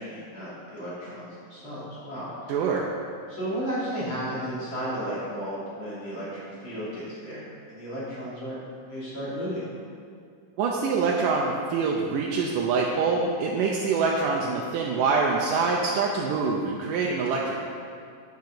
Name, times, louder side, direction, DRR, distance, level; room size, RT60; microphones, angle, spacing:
voice 1, 0.0-2.5 3.3-8.6 8.9-9.7, equal, 40° left, -9 dB, 3.3 m, -34 dB
voice 2, 2.5-2.8 10.6-17.7, right 4 dB, 90° right, -2 dB, 2.4 m, -25 dB
8.8 x 6.7 x 6.6 m, 2.3 s
omnidirectional pair, 3.8 m